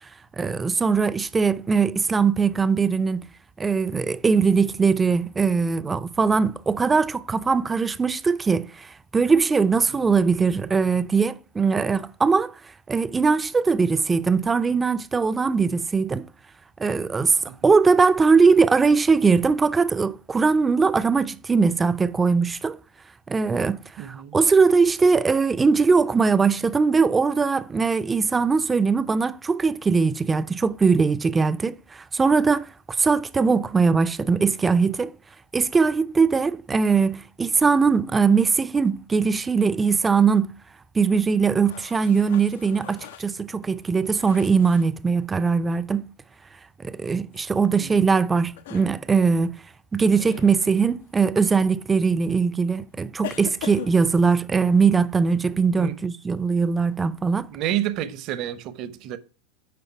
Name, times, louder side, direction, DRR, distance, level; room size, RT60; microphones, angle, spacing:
voice 1, 0.4-3.2 3.6-12.5 12.9-16.3 16.8-17.4 17.6-22.8 23.3-32.7 33.0-35.1 35.5-40.5 40.9-46.1 46.8-49.6 49.9-57.5, right 5 dB, 15° right, 0.5 m, -21 dB
voice 2, 24.0-24.4 47.8-48.1 55.8-56.0 57.5-59.2, right 12 dB, 45° right, 0.8 m, -30 dB
sound 1, 41.6-44.9 47.3-47.5 48.5-48.9 50.1-50.5 51.4-51.6 53.2-54.4, left 11 dB, 60° left, 0.5 m, -40 dB
9.5 x 5.2 x 4.5 m
figure-of-eight pair, 85°, 0 cm